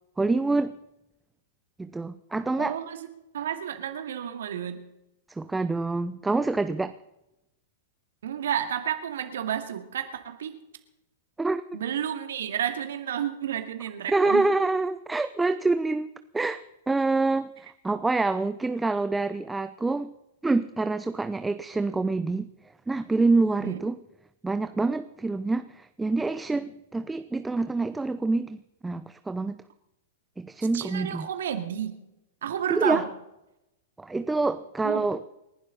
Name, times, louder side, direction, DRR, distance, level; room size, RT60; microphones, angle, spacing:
voice 1, 0.2-0.8 1.8-2.8 5.3-6.9 11.4-11.6 14.1-16.6 16.9-20.1 20.4-22.5 22.9-24.0 24.4-29.6 30.4-31.3 32.7-33.0 34.0-35.2, right 3 dB, 10° right, 11 dB, 0.7 m, -26 dB
voice 2, 2.6-3.1 3.3-4.8 8.2-10.6 11.7-14.4 23.6-23.8 30.7-32.0 32.4-33.1 34.8-35.0, right 9 dB, 65° right, 7 dB, 2.3 m, -31 dB
29.0 x 11.5 x 4.1 m, 0.91 s
figure-of-eight pair, 105°, 0 cm